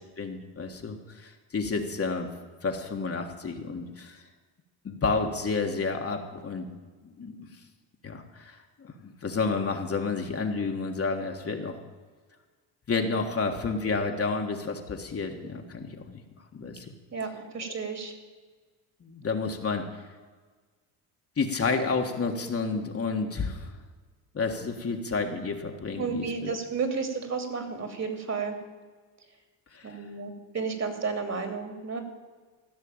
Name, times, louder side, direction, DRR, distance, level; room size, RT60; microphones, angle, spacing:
voice 1, 0.2-2.3 2.6-4.2 4.8-6.7 7.0-7.5 8.0-11.8 12.9-16.2 16.5-16.8 17.6-17.7 19.0-19.9 21.4-23.8 24.3-26.5 29.7-30.0, left 4 dB, 30° left, 3 dB, 1.6 m, -30 dB
voice 2, 17.1-18.1 26.0-28.6 29.8-32.0, right 5 dB, 35° right, 6 dB, 2.8 m, -32 dB
15.5 x 6.4 x 8.9 m, 1.4 s
supercardioid pair, 90°, 43 cm